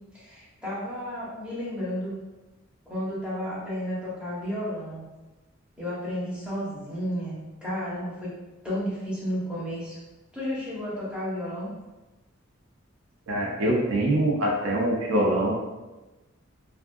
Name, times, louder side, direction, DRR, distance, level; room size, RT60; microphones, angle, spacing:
voice 1, 0.1-2.1 2.9-5.0 5.8-8.4 8.6-10.0 10.3-11.7, equal, 5° right, -10 dB, 0.9 m, -32 dB
voice 2, 13.3-15.5, right 1 dB, 80° right, -2 dB, 0.5 m, -24 dB
2.4 x 2.3 x 2.5 m, 1.1 s
head